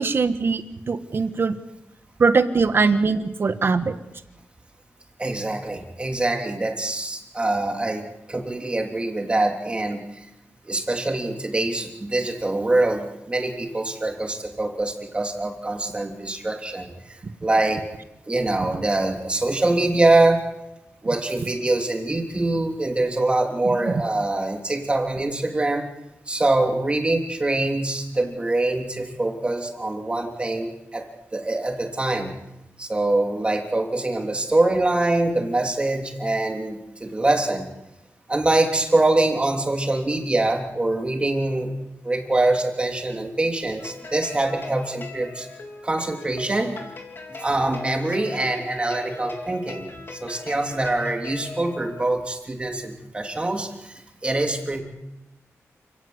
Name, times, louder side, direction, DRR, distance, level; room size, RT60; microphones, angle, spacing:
voice 1, 0.0-1.5 2.2-3.9 23.8-23.9, right 4 dB, 45° right, 10 dB, 1.5 m, -21 dB
voice 2, 5.2-10.3 10.6-17.8 18.3-20.5 21.0-25.8 26.3-31.1 31.3-32.3 32.8-37.7 38.3-41.7 42.0-45.5 45.8-46.8 47.3-54.8, right 2 dB, 20° right, 3 dB, 3.3 m, -24 dB
sound 1, 43.8-52.2, left 3 dB, 45° left, 3.8 m, -40 dB
29.0 x 18.0 x 8.1 m, 0.93 s
wide cardioid pair, 165°, 5 cm